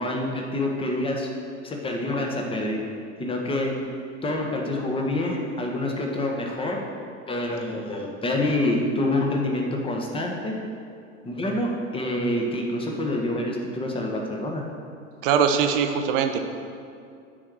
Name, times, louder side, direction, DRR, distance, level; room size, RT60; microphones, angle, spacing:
voice 1, 0.0-1.3 1.6-2.8 3.2-3.7 4.2-6.8 7.3-10.5 11.2-14.6, left 1 dB, 15° left, 0 dB, 1.3 m, -27 dB
voice 2, 15.2-16.4, right 7 dB, 45° right, 6 dB, 0.9 m, -21 dB
10.0 x 4.8 x 6.3 m, 2.4 s
figure-of-eight pair, 85°, 38 cm